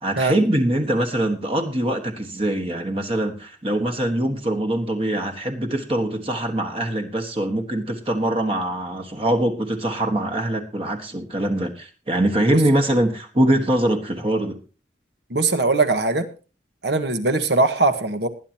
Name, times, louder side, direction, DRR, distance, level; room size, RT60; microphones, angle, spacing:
voice 1, 0.0-14.6, right 1 dB, 30° right, 5 dB, 1.5 m, -23 dB
voice 2, 15.3-16.3 16.8-18.3, right 3 dB, 65° right, 9 dB, 1.5 m, -20 dB
20.0 x 10.5 x 2.9 m, 0.34 s
head